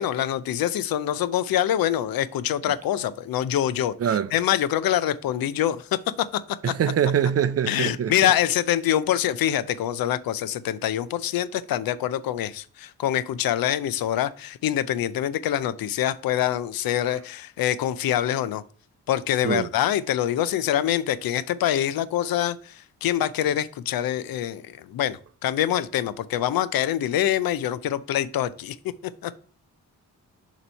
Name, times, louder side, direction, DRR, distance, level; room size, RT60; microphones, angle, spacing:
voice 1, 0.0-5.8 6.3-6.4 6.7-6.8 7.7-18.6 19.1-22.6 23.0-28.8 29.2-29.3, left 11 dB, 90° left, 0.5 m, -25 dB
voice 2, 4.0-4.3 6.6-8.1 19.4-19.7, right 9 dB, 45° right, 0.5 m, -23 dB
6.8 x 3.1 x 5.4 m
cardioid pair, 105°, 34 cm